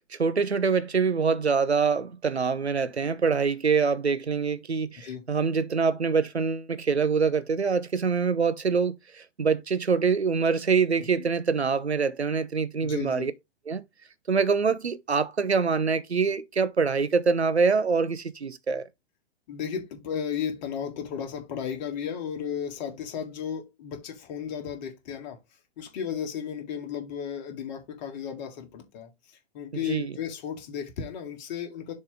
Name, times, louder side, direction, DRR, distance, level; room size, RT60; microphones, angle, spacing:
voice 1, 0.2-13.3 13.7-13.8 14.3-18.8 29.9-30.1, right 5 dB, 85° right, 0.7 m, -25 dB
voice 2, 5.0-5.3 11.2-11.3 12.8-13.3 19.5-25.4 25.8-31.9, left 8 dB, 45° left, 2.0 m, -34 dB
6.8 x 3.3 x 4.7 m
figure-of-eight pair, 105°, 32 cm